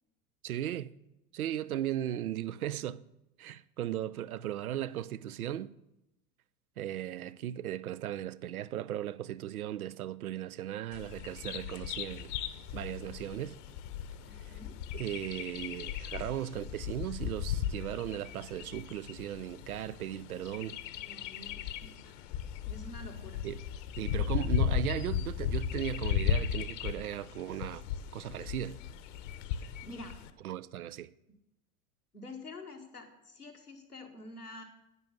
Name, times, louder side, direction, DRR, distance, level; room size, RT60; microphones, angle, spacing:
voice 1, 0.4-0.9 1.3-3.0 3.4-5.7 6.8-12.3 12.7-13.5 14.4-14.5 14.9-20.8 23.4-23.6 24.0-27.8 28.1-28.8 30.4-31.1, right 11 dB, 70° right, 0.6 m, -37 dB
Bird vocalization bird call bird song, 10.9-30.3, left 9 dB, 55° left, 1.1 m, -36 dB
voice 2, 14.2-14.7 20.9-22.2 22.6-23.4 29.8-30.2 32.1-34.6, left 2 dB, 90° left, 1.6 m, -47 dB
11.0 x 9.6 x 6.4 m
figure-of-eight pair, 75°, 45 cm